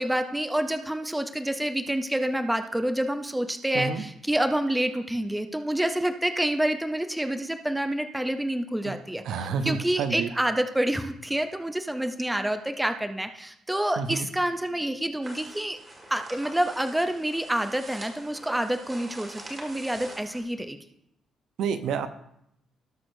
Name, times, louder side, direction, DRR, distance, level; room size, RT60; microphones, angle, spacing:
voice 1, 0.0-9.2 9.6-15.8 16.1-20.8, right 1 dB, 5° right, 8 dB, 0.5 m, -28 dB
voice 2, 9.2-10.3 14.0-14.3 21.6-22.1, right 6 dB, 70° right, 9 dB, 0.7 m, -29 dB
sound 1, 15.2-20.4, right 1 dB, 20° right, 1.8 m, -44 dB
18.5 x 6.3 x 2.6 m, 0.77 s
cardioid pair, 170°, 0 cm